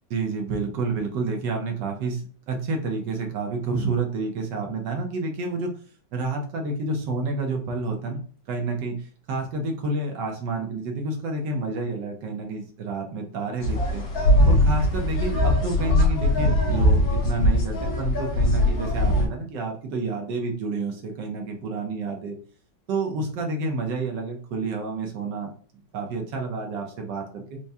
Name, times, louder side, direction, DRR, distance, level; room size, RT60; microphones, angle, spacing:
voice 1, 0.1-5.7 6.1-8.2 8.5-14.0 14.4-22.4 22.9-25.5 25.9-27.6, right 3 dB, 70° right, 2 dB, 1.2 m, -29 dB
sound 1, 13.6-19.3, left 1 dB, 75° left, 2.0 m, -21 dB
4.6 x 2.1 x 2.7 m, 0.42 s
omnidirectional pair, 2.2 m